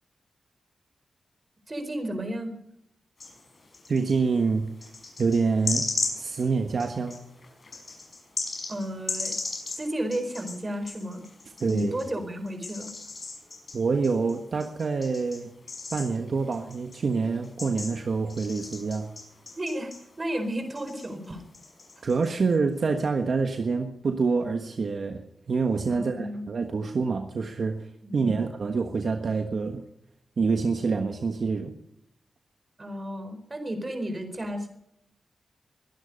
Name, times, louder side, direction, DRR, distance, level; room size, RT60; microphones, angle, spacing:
voice 1, 1.7-2.5 8.7-9.3 9.8-11.2 11.7-12.9 19.6-19.9 20.2-21.4 25.9-26.4 28.0-28.4 32.8-34.7, equal, 35° right, 8 dB, 4.4 m, -32 dB
sound 1, 3.2-4.2 4.8-12.1 12.5-20.5 20.7-22.6, left 3 dB, 50° left, 5.7 m, -37 dB
voice 2, 3.9-4.7 5.2-5.9 6.1-7.2 11.6-12.0 13.7-15.5 15.9-19.1 22.0-27.8 28.1-29.8 30.4-31.7, right 4 dB, 65° right, 5 dB, 1.4 m, -26 dB
22.5 x 11.0 x 5.4 m, 0.77 s
cardioid pair, 60°, 0 cm